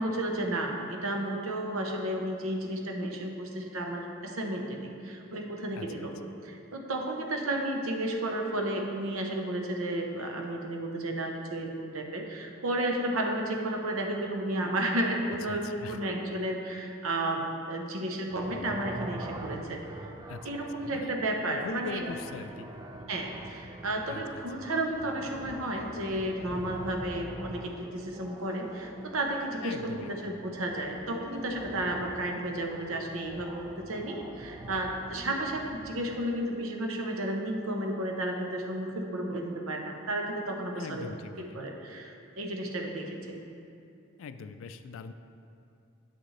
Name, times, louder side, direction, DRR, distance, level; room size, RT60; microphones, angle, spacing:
voice 1, 0.0-6.1 6.4-19.8 20.4-22.0 23.1-41.1 41.4-43.4, right 1 dB, 85° right, 2 dB, 0.8 m, -32 dB
voice 2, 5.8-6.1 15.5-16.0 20.3-22.7 24.1-24.7 29.6-30.1 40.8-41.6 44.2-45.1, left 5 dB, 70° left, 10 dB, 0.3 m, -42 dB
sound 1, 18.3-36.2, right 1 dB, 20° right, 0.3 m, -45 dB
8.3 x 6.3 x 3.2 m, 2.5 s
head